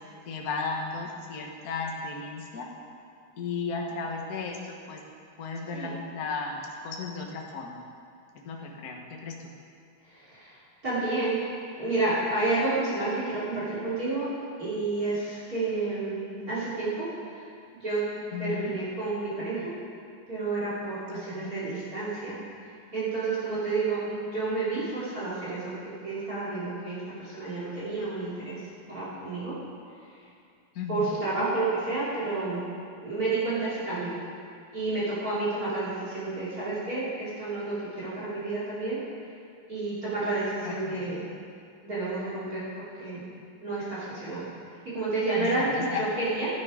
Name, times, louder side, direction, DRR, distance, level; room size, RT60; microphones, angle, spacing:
voice 1, 0.3-2.7 3.4-5.0 5.4-7.8 8.4-9.0 9.2-9.3 18.3-18.7 21.3-21.6 30.7-31.2 40.6-41.2 45.4-46.0, left 4 dB, 50° left, 0 dB, 1.1 m, -35 dB
voice 2, 10.8-11.4 11.7-14.3 14.6-17.1 17.8-18.1 18.4-19.7 20.3-22.4 22.9-25.7 26.0-28.6 28.9-29.5 30.9-32.6 33.0-34.1 34.7-39.0 39.7-41.2 41.8-42.6 43.0-43.2 43.6-44.5 44.9-45.7 46.0-46.5, right 3 dB, 30° right, -8 dB, 3.0 m, -30 dB
13.5 x 9.4 x 5.0 m, 2.4 s
omnidirectional pair, 3.4 m